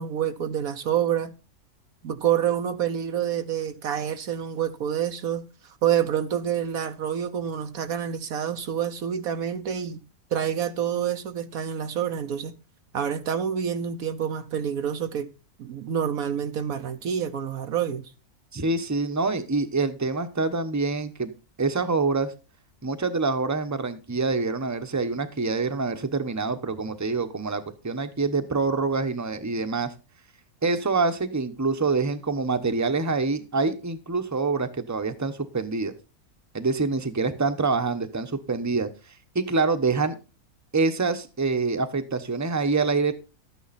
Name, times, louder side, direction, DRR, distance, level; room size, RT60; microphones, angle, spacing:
voice 1, 0.0-1.3 2.0-10.0 10.3-12.5 12.9-15.3 15.6-18.1, right 9 dB, 70° right, 1.3 m, -27 dB
voice 2, 18.5-21.3 21.6-22.3 22.8-29.9 30.6-35.9 36.5-38.9 39.3-40.1 40.7-43.1, right 3 dB, 15° right, 0.9 m, -26 dB
12.5 x 9.3 x 4.2 m
omnidirectional pair, 1.6 m